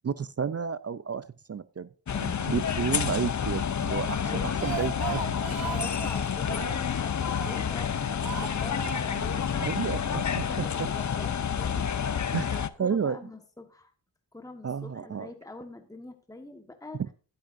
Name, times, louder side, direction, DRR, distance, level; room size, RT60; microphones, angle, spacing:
voice 1, 0.0-1.9 2.2-5.4 9.6-10.9 12.3-13.2 14.6-15.3, right 6 dB, 35° right, 16 dB, 0.4 m, -31 dB
sound 1, 2.1-12.7, left 7 dB, 40° left, 0.6 m, -29 dB
voice 2, 4.2-4.6 5.4-13.9 14.3-17.0, left 2 dB, 10° left, 5 dB, 1.4 m, -45 dB
Speech, 4.3-7.8 8.2-9.4 9.6-9.7 10.0-10.1, right 8 dB, 50° right, 0.9 m, -38 dB
11.5 x 10.5 x 2.6 m, 0.36 s
cardioid pair, 70°, 45 cm